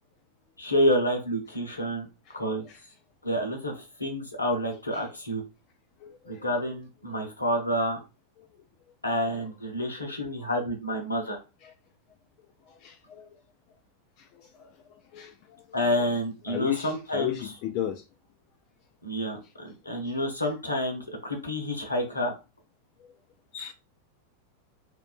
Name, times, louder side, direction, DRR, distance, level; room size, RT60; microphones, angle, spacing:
voice 1, 0.6-2.1 2.3-2.6 3.2-5.4 6.3-8.0 9.0-11.4 15.7-17.5 19.0-22.3, equal, 80° left, 0.8 m, -29 dB
voice 2, 6.0-6.5 11.6-11.7 12.8-13.2 14.6-14.7 15.1-15.3 16.5-18.0 23.5-23.7, left 11 dB, 40° left, 0.3 m, -34 dB
3.4 x 2.4 x 2.2 m
figure-of-eight pair, 90°, 0 cm